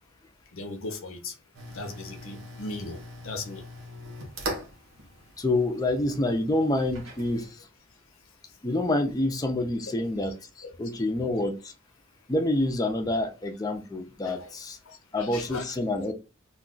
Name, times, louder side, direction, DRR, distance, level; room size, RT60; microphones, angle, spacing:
voice 1, 0.5-1.3 1.7-3.6 9.8-9.9 14.2-14.5 14.9-15.6, left 2 dB, 90° left, 0.6 m, -38 dB
sound 1, 1.5-7.5, right 1 dB, 80° right, 0.8 m, -41 dB
voice 2, 5.4-7.5 8.6-10.3 10.8-11.7 12.3-14.8 15.1-16.1, left 2 dB, 20° left, 0.4 m, -27 dB
2.2 x 2.2 x 3.7 m
head